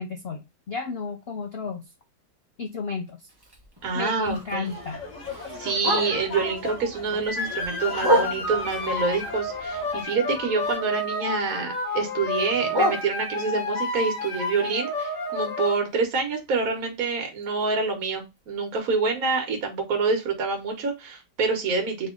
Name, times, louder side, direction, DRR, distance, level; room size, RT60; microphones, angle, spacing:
voice 1, 0.0-1.9 2.6-3.3 3.9-5.0, left 4 dB, 80° left, 4 dB, 0.5 m, -33 dB
Bark, 3.3-6.5 6.9-8.8 9.2-11.1 11.3-13.7 14.1-18.0 18.4-18.5 18.8-19.1 19.6-19.7 20.0-20.1 20.6-20.7, equal, 20° right, 0.7 m, -31 dB
voice 2, 3.8-4.7 5.6-22.1, right 4 dB, 60° right, 3 dB, 1.6 m, -27 dB
sound 1, 4.6-10.0, left 3 dB, 25° left, 1.7 m, -37 dB
sound 2, 7.3-15.8, left 2 dB, 50° left, 1.8 m, -30 dB
3.7 x 3.1 x 3.8 m, 0.21 s
omnidirectional pair, 1.9 m